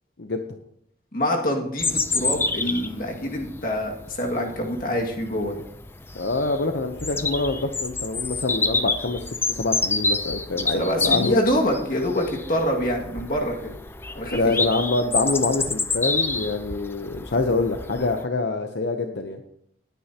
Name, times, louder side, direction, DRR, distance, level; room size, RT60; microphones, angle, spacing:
voice 1, 1.1-5.6 10.7-13.7 14.1-14.5, equal, 50° left, 0 dB, 2.1 m, -25 dB
Bird vocalization bird call bird song, 1.8-18.2, left 3 dB, 15° left, 0.5 m, -28 dB
voice 2, 6.1-11.3 14.3-19.4, left 3 dB, 75° left, 6 dB, 0.8 m, -25 dB
19.0 x 9.2 x 2.9 m, 0.71 s
head